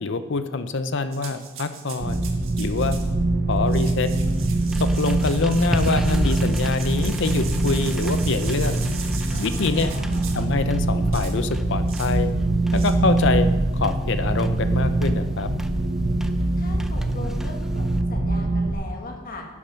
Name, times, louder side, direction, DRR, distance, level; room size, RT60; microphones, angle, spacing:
voice 1, 0.0-2.2 2.6-3.0 3.5-4.1 4.8-8.8 9.4-9.9 10.3-12.3 12.7-13.5 13.7-15.5, left 3 dB, 55° left, 11 dB, 0.6 m, -25 dB
sound 1, 1.1-3.1 3.6-10.5 11.1-11.4 11.9-12.2 12.7-12.9, right 7 dB, 70° right, 1.5 m, -39 dB
sound 2, 2.0-18.7, right 2 dB, 45° right, 0.9 m, -23 dB
sound 3, 4.2-18.0, equal, ahead, 0.4 m, -34 dB
voice 2, 9.3-10.3 16.5-19.5, left 1 dB, 40° left, 2 dB, 1.7 m, -39 dB
11.5 x 7.2 x 5.7 m, 1.2 s
head